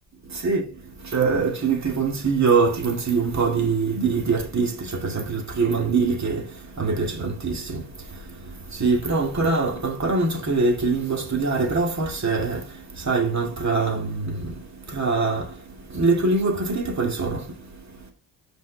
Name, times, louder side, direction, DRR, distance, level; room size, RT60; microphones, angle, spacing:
voice 1, 0.2-18.1, right 4 dB, 40° right, 2.2 m, -24 dB
6.2 x 5.4 x 3.4 m
supercardioid pair, 65°, 44 cm